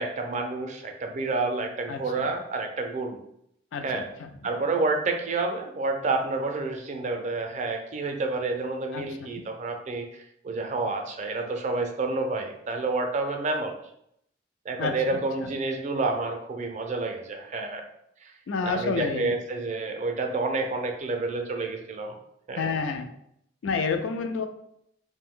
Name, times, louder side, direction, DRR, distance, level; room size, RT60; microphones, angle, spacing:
voice 1, 0.0-3.2 3.8-4.0 4.4-13.7 14.7-17.9 18.2-18.3 18.6-22.2 22.5-22.7, right 3 dB, 40° right, 4 dB, 0.4 m, -29 dB
voice 2, 1.9-2.3 3.7-4.3 8.9-9.3 14.8-15.5 18.5-19.3 22.6-23.1 23.6-24.5, left 5 dB, 85° left, 6 dB, 0.4 m, -30 dB
2.5 x 2.1 x 3.6 m, 0.74 s
head